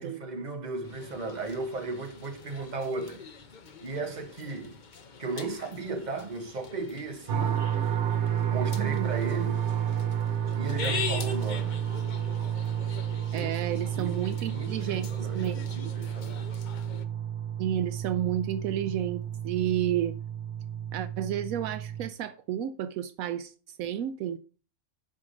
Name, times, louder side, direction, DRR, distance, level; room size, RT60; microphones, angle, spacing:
voice 1, 0.0-3.2 3.8-4.8 5.2-7.6 8.5-9.6 10.6-11.8 13.3-13.5 13.9-14.2 14.5-16.6, right 3 dB, 30° right, 1.4 m, -35 dB
sound 1, 0.8-17.0, left 6 dB, 40° left, 0.8 m, -42 dB
sound 2, 7.3-22.1, right 9 dB, 55° right, 1.1 m, -31 dB
voice 2, 8.8-9.1 13.3-15.1 15.3-15.9 17.6-20.1 20.9-24.4, right 11 dB, 80° right, 1.0 m, -31 dB
8.3 x 4.9 x 6.3 m
omnidirectional pair, 1.5 m